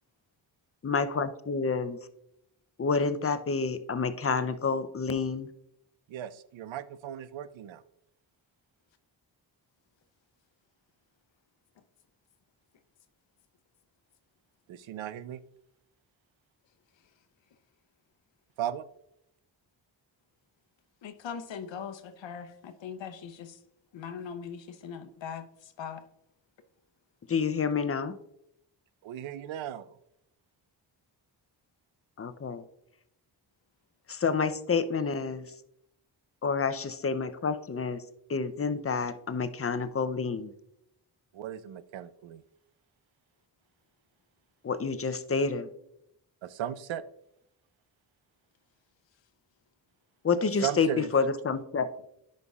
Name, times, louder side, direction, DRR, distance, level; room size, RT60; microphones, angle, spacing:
voice 1, 0.8-2.0 2.8-5.5 27.3-28.2 32.2-32.6 34.1-35.5 36.4-38.0 38.3-40.5 44.6-45.7 50.2-52.1, left 5 dB, 30° left, 0.6 m, -29 dB
voice 2, 6.1-7.8 14.7-15.4 18.6-18.8 29.0-29.9 41.3-42.4 46.4-47.0 50.6-51.1, right 10 dB, 80° right, 0.5 m, -36 dB
voice 3, 21.0-23.6 23.9-25.5 25.8-26.0, left 7 dB, 70° left, 0.8 m, -40 dB
10.5 x 5.3 x 2.4 m
cardioid pair, 65°, 46 cm